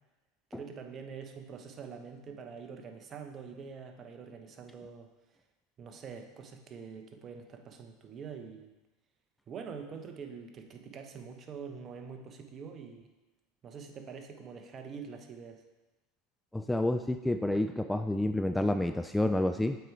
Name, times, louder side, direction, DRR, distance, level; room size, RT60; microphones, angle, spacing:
voice 1, 0.5-5.1 5.8-8.7 9.5-13.1 13.6-15.6, right 6 dB, 35° right, 5 dB, 0.9 m, -45 dB
voice 2, 16.5-19.8, left 1 dB, 5° left, 8 dB, 0.3 m, -29 dB
7.9 x 4.7 x 4.5 m, 1.1 s
hypercardioid pair, 85°, 0 cm